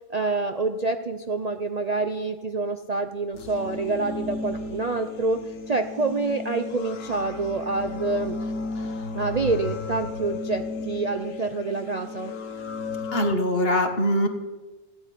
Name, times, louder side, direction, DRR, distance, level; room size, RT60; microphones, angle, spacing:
voice 1, 0.1-5.4 5.7-8.3 9.1-12.3, right 3 dB, 75° right, 7 dB, 0.3 m, -27 dB
sound 1, 3.3-13.3, left 3 dB, 50° left, 1.4 m, -34 dB
voice 2, 13.1-14.3, equal, 35° left, 6 dB, 1.8 m, -22 dB
15.5 x 8.9 x 10.0 m, 1.2 s
omnidirectional pair, 1.8 m